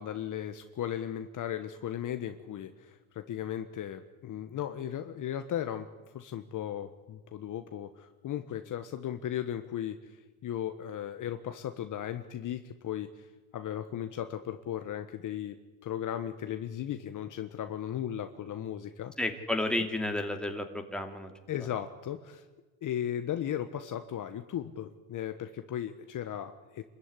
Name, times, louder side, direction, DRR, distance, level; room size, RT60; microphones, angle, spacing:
voice 1, 0.0-5.9 6.1-10.2 10.4-13.3 13.5-15.6 15.8-19.1 21.5-22.4 22.8-26.8, left 10 dB, 45° left, 8 dB, 1.3 m, -36 dB
voice 2, 19.2-21.3, left 1 dB, ahead, 4 dB, 2.8 m, -32 dB
27.5 x 14.5 x 9.9 m, 1.3 s
supercardioid pair, 115°, 45 cm